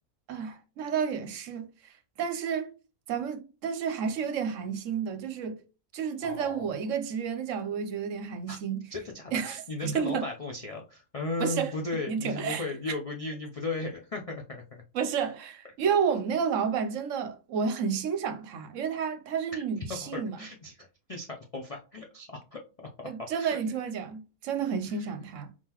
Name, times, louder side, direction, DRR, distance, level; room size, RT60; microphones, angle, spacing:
voice 1, 0.3-2.7 3.1-5.6 5.9-8.8 9.3-9.6 9.8-10.2 11.4-11.7 12.1-12.6 14.9-20.4 23.1-25.5, right 7 dB, 70° right, 1.0 m, -31 dB
voice 2, 6.2-6.8 8.5-8.6 8.9-14.8 19.5-19.6 19.9-23.6 24.9-25.1, left 3 dB, 70° left, 0.3 m, -36 dB
4.6 x 3.7 x 2.9 m
omnidirectional pair, 1.5 m